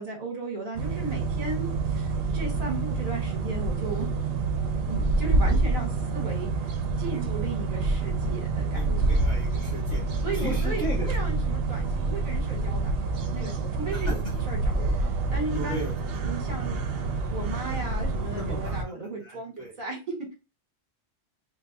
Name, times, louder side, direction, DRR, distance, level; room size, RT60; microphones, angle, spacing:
voice 1, 0.0-4.1 4.9-6.5 7.0-9.1 10.2-12.9 13.3-15.0 15.3-15.9 16.2-16.8 17.3-20.3, right 2 dB, 50° right, 2 dB, 1.2 m, -35 dB
sound 1, 0.7-18.8, right 3 dB, 65° right, 0.8 m, -27 dB
voice 2, 8.7-10.0 10.3-11.5 13.9-14.2 15.5-15.9 18.3-19.8, left 1 dB, 30° left, -3 dB, 0.9 m, -37 dB
3.2 x 2.1 x 3.7 m, 0.29 s
omnidirectional pair, 1.1 m